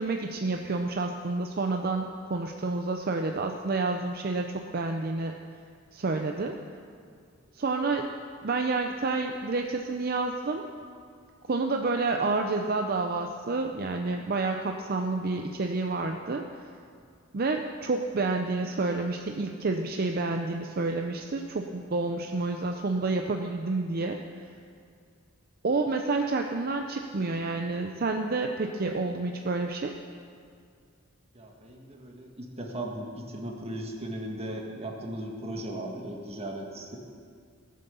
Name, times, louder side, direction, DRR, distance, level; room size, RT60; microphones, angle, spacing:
voice 1, 0.0-5.3 5.9-6.5 7.5-8.1 8.4-10.6 11.5-16.4 17.3-24.2 25.6-29.9, right 3 dB, 50° right, 4 dB, 0.6 m, -29 dB
voice 2, 31.3-37.0, right 1 dB, 30° right, 0 dB, 1.7 m, -37 dB
17.5 x 7.6 x 6.9 m, 2.3 s
head